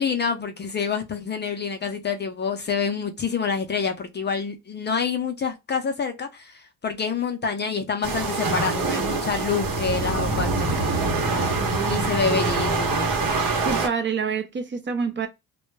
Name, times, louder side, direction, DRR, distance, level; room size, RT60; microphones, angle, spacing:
voice 1, 0.0-10.7 11.8-13.1, left 5 dB, 30° left, 0.5 m, -27 dB
sound 1, 8.0-13.9, right 3 dB, 70° right, 0.9 m, -24 dB
voice 2, 11.6-12.0 13.6-15.3, right 6 dB, 30° right, 0.5 m, -27 dB
2.1 x 2.1 x 3.1 m
cardioid pair, 100°, 36 cm